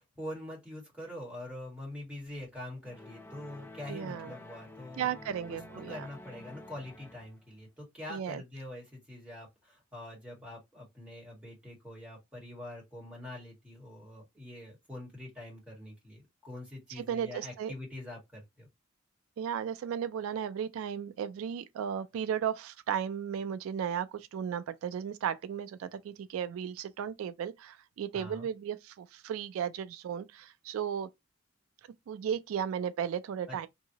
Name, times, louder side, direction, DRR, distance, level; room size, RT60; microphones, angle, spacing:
voice 1, 0.0-5.1 5.5-18.7 28.1-28.5 33.5-33.7, left 1 dB, 5° right, 1.6 m, -44 dB
sound 1, 2.8-7.5, left 2 dB, 10° left, 0.4 m, -49 dB
voice 2, 3.9-4.3 5.0-6.1 8.1-8.4 17.0-17.7 19.4-31.1 32.1-33.7, right 8 dB, 75° right, 0.3 m, -35 dB
2.8 x 2.7 x 2.8 m
head